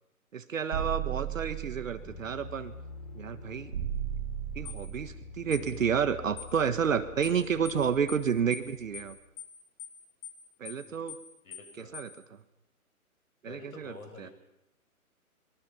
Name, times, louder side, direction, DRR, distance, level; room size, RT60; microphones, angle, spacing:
voice 1, 0.3-2.7 3.1-3.7 4.5-9.2 10.6-11.2 11.7-12.4 13.4-14.3, right 7 dB, 60° right, 10 dB, 1.6 m, -30 dB
sound 1, 0.7-2.2 3.7-5.2, right 11 dB, 45° right, 3.2 m, -35 dB
sound 2, 2.0-9.2, left 3 dB, 35° left, 7.7 m, -46 dB
sound 3, 4.6-4.8 5.5-5.7 6.4-6.5 7.2-7.4 7.6-7.8 8.1-8.2 8.5-8.7 8.9-9.1 9.4-9.5 9.8-10.0 10.2-10.4 10.6-10.8 11.1-11.2 11.5-11.7 11.9-12.1, left 10 dB, 50° left, 7.0 m, -43 dB
voice 2, 11.4-12.0 13.5-14.3, left 2 dB, 70° left, 5 dB, 7.1 m, -48 dB
26.5 x 23.0 x 5.7 m, 0.87 s
figure-of-eight pair, 140°, 44 cm